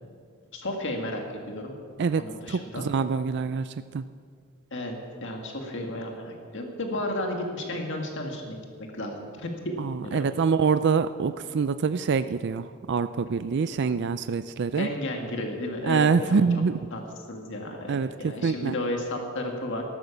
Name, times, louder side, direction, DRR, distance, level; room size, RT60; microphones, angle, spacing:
voice 1, 0.5-1.7 2.2-2.9 4.7-8.6 8.9-10.3 14.7-16.4 16.9-17.0 17.3-19.8, left 1 dB, 60° left, 2 dB, 1.9 m, -33 dB
voice 2, 2.5-4.0 9.8-14.9 15.8-16.7 17.9-18.1 18.4-18.7, right 5 dB, 55° right, 12 dB, 0.4 m, -25 dB
13.5 x 12.0 x 7.2 m, 2.1 s
head